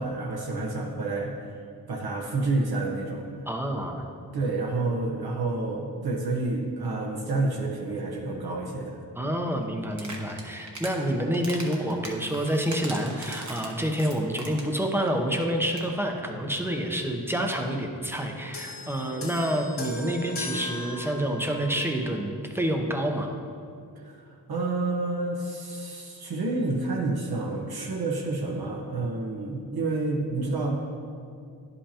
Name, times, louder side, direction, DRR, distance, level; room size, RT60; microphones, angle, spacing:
voice 1, 0.0-1.3 1.9-3.5 4.3-9.0 23.9-30.7, right 2 dB, 65° right, -1 dB, 1.0 m, -29 dB
voice 2, 3.5-4.0 9.2-23.3, equal, 5° right, 2 dB, 0.7 m, -28 dB
sound 1, 9.9-11.0 11.3-14.8 15.1-15.2 15.4-15.5 15.7-15.9, right 2 dB, 45° right, 1.1 m, -40 dB
sound 2, 18.5-22.1 23.0-23.2, left 1 dB, 70° left, 1.4 m, -38 dB
9.9 x 5.5 x 2.9 m, 2.4 s
cardioid pair, 80°, 40 cm